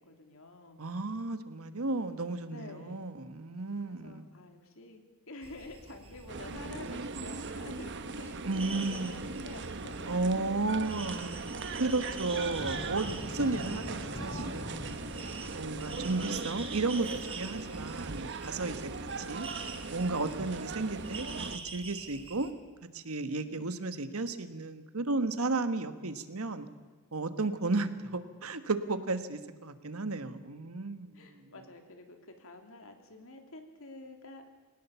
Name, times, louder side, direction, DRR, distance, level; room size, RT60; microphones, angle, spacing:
voice 1, 0.0-0.8 2.5-3.1 3.8-10.5 23.4-23.8 31.1-34.4, left 2 dB, 70° left, 5 dB, 2.9 m, -49 dB
voice 2, 0.8-4.3 8.4-9.2 10.0-11.3 11.8-14.9 15.5-18.9 19.2-19.5 19.9-22.5 22.9-26.7 27.1-31.5, right 3 dB, 80° right, 11 dB, 1.4 m, -33 dB
sound 1, 5.4-22.5, right 3 dB, 25° right, 2.0 m, -46 dB
sound 2, 6.3-21.6, right 3 dB, 55° right, 1.0 m, -39 dB
sound 3, 12.6-16.6, left 2 dB, 20° left, 0.6 m, -44 dB
22.0 x 18.5 x 7.0 m, 1.4 s
head